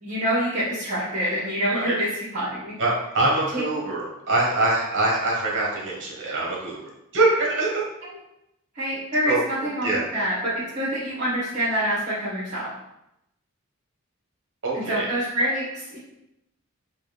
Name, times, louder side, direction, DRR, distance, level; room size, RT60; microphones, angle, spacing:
voice 1, 0.0-2.7 3.5-3.7 8.7-12.7 14.7-16.0, equal, 35° right, -11 dB, 1.3 m, -26 dB
voice 2, 2.8-7.8 9.2-10.1 14.6-15.1, right 2 dB, 55° right, -3 dB, 1.2 m, -24 dB
4.6 x 2.4 x 3.3 m, 0.84 s
head